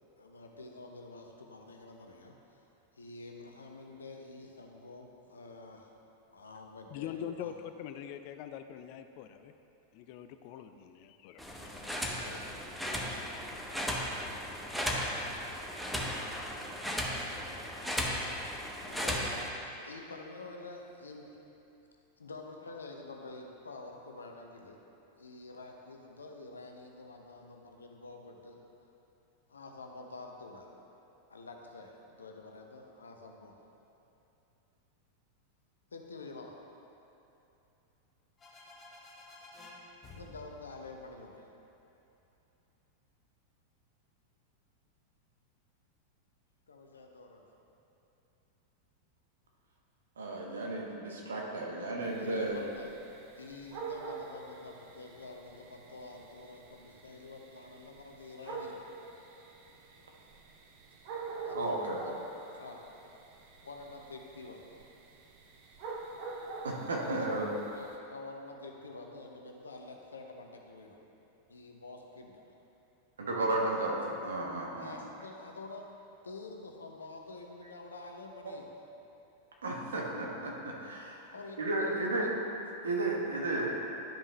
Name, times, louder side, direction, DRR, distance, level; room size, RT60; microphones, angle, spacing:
voice 1, 0.2-2.7 2.9-5.9 6.3-7.5 12.0-12.6 18.8-19.4 19.8-21.3 22.2-24.8 25.2-28.7 29.5-30.7 31.3-33.5 35.9-36.6 40.1-41.4 46.7-47.4 52.2-52.9 53.4-58.8 61.4-62.2 62.6-63.1 63.6-64.8 67.0-71.0 71.5-72.4 74.8-75.9 76.2-78.7 81.3-82.3, left 3 dB, 75° left, 2 dB, 0.7 m, -48 dB
voice 2, 6.9-9.5 9.9-11.4, left 9 dB, 45° left, 9 dB, 0.3 m, -43 dB
sound 1, 11.4-19.5, equal, ahead, 0.8 m, -36 dB
sound 2, 38.4-42.0, left 2 dB, 20° left, 1.1 m, -53 dB
voice 3, 50.2-52.6 61.5-62.0 66.6-67.5 73.2-74.9 79.6-81.2 81.6-82.3 82.8-83.9, right 2 dB, 70° right, -1 dB, 1.1 m, -33 dB
sound 3, 52.0-68.0, right 4 dB, 45° right, 0.7 m, -46 dB
11.5 x 5.4 x 3.1 m, 2.9 s
figure-of-eight pair, 90°, 0 cm